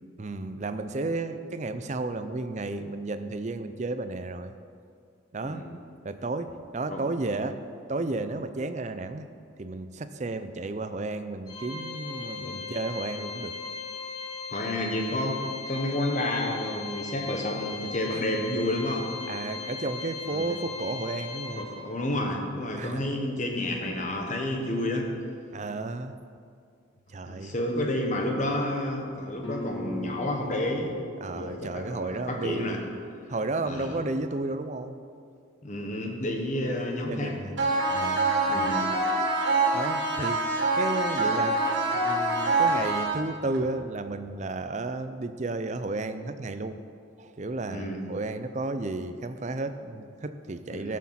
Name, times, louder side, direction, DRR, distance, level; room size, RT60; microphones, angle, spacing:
voice 1, 0.2-4.5 5.3-5.6 6.0-7.6 7.9-9.3 9.6-13.5 18.1-18.2 19.3-21.7 22.7-23.1 25.5-26.1 27.1-27.5 31.2-32.8 33.3-35.0 37.1-37.6 37.9-38.8 39.7-40.5 40.8-41.6 41.9-46.8 47.2-51.0, right 2 dB, 35° right, 10 dB, 0.5 m, -33 dB
voice 2, 5.4-5.8 6.9-7.0 12.4-12.6 14.5-19.1 20.3-20.4 21.6-25.1 27.3-30.9 31.3-32.8 33.6-33.9 35.6-37.4 38.5-38.8 47.7-48.0 50.7-51.0, left 1 dB, 40° left, 2 dB, 1.2 m, -30 dB
Organ, 11.5-22.1, left 5 dB, 20° left, 1.2 m, -38 dB
Guitar, 29.4-34.8, left 1 dB, 80° left, 1.8 m, -42 dB
sound 1, 37.6-43.6, right 2 dB, 70° right, 2.0 m, -25 dB
13.5 x 6.4 x 5.8 m, 2.3 s
head